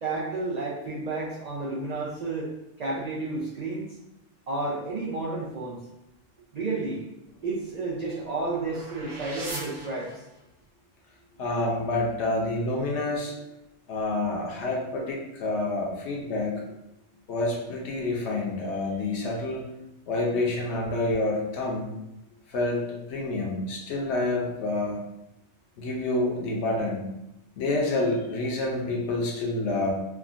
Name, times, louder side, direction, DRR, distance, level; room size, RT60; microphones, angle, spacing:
voice 1, 0.0-2.5 2.8-3.9 4.5-5.8 6.5-7.1 7.4-10.2, right 3 dB, 90° right, -5 dB, 0.3 m, -31 dB
sound 1, 7.2-10.7, right 2 dB, 50° right, 0.7 m, -41 dB
voice 2, 11.4-13.3 13.9-16.6 17.3-19.6 20.1-21.9 22.5-25.0 25.8-27.0 27.6-29.9, left 2 dB, 70° left, -2 dB, 0.9 m, -28 dB
3.3 x 2.1 x 2.4 m, 0.89 s
omnidirectional pair, 1.3 m